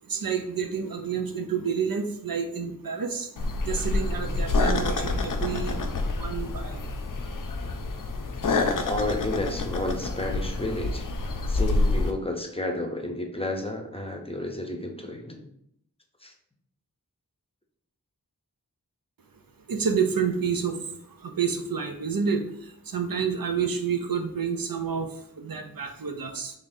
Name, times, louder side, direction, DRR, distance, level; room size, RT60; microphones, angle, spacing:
voice 1, 0.1-3.3 3.7-5.8 6.2-6.8 19.7-20.7 21.4-22.4 22.9-25.1 25.4-26.5, right 6 dB, 80° right, 5 dB, 0.5 m, -28 dB
sound 1, 3.4-12.1, left 2 dB, 65° left, 0.5 m, -27 dB
voice 2, 8.4-11.0 11.5-15.4 16.2-16.3, left 1 dB, 15° left, 2 dB, 0.6 m, -31 dB
3.8 x 3.5 x 2.6 m, 0.71 s
wide cardioid pair, 40°, 34 cm